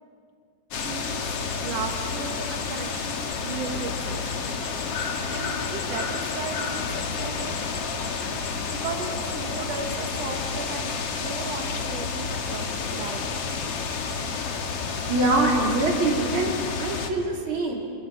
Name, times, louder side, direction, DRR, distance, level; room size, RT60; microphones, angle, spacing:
sound 1, 0.7-17.1, left 5 dB, 60° left, 1.6 m, -30 dB
voice 1, 0.8-4.3 4.9-7.8 8.7-13.3, right 4 dB, 70° right, 3 dB, 1.5 m, -36 dB
voice 2, 15.1-17.8, right 2 dB, 30° right, -2 dB, 3.7 m, -24 dB
30.0 x 27.5 x 5.0 m, 2.3 s
omnidirectional pair, 5.0 m